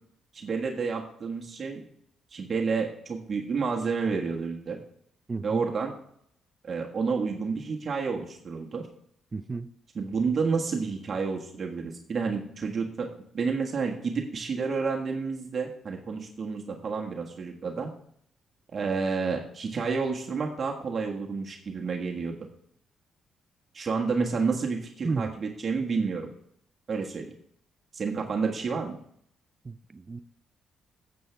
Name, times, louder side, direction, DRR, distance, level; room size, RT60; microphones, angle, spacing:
voice 1, 0.3-1.8 2.3-4.8 5.4-5.9 6.6-8.9 9.9-13.1 13.3-17.9 18.7-22.3 23.7-26.3 26.9-27.3 27.9-29.0, right 5 dB, 45° right, 1.5 m, -30 dB
voice 2, 5.3-5.6 9.3-9.7 25.0-25.3 29.6-30.2, right 4 dB, 30° right, 0.4 m, -32 dB
12.5 x 8.0 x 3.4 m
cardioid pair, 90°, 0 cm